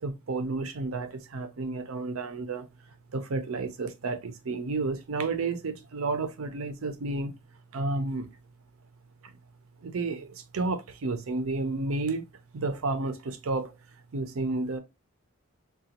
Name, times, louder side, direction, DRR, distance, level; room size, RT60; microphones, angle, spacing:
voice 1, 0.0-2.7 3.1-7.3 7.7-8.3 9.8-12.3 12.5-13.7 14.1-14.8, right 3 dB, 70° right, 0.5 m, -31 dB
3.9 x 2.2 x 2.7 m
head